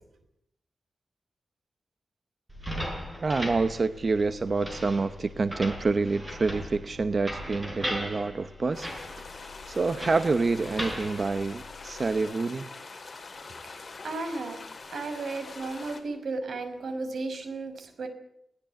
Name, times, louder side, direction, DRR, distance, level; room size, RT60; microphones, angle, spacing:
sound 1, 2.5-12.2, equal, 15° right, 6.4 m, -38 dB
voice 1, 3.2-8.9 9.3-9.4 9.7-12.7, right 3 dB, 40° right, 10 dB, 1.0 m, -27 dB
sound 2, 8.7-16.0, left 4 dB, 40° left, 5.4 m, -44 dB
voice 2, 14.0-14.6 14.9-18.1, right 3 dB, 80° right, 8 dB, 5.6 m, -34 dB
21.0 x 18.0 x 10.0 m, 0.77 s
wide cardioid pair, 150°, 0 cm